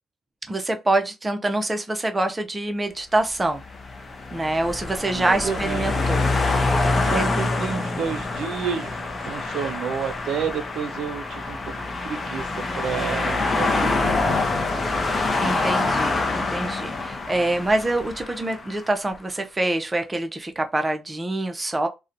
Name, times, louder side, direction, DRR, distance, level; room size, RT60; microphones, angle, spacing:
voice 1, 0.5-3.6 4.3-6.3 7.1-7.3 15.4-21.9, right 2 dB, 20° right, 0.5 m, -25 dB
sound 1, 3.4-18.8, left 3 dB, 35° left, 0.5 m, -26 dB
voice 2, 5.1-6.2 7.0-11.6 12.0-14.8, right 7 dB, 75° right, 0.4 m, -31 dB
2.6 x 2.1 x 2.5 m
cardioid pair, 90°, 0 cm